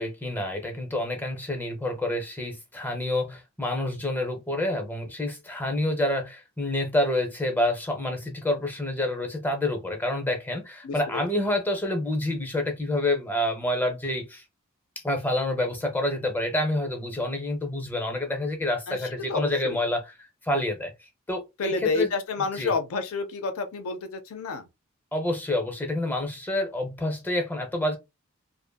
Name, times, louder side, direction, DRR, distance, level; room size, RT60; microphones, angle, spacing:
voice 1, 0.0-14.4 15.0-20.9 21.3-22.1 22.6-22.7 25.1-28.0, left 1 dB, 10° left, 0.5 m, -28 dB
voice 2, 10.8-11.3 18.9-19.8 21.6-24.7, left 4 dB, 80° left, 0.5 m, -30 dB
2.5 x 2.5 x 2.2 m
head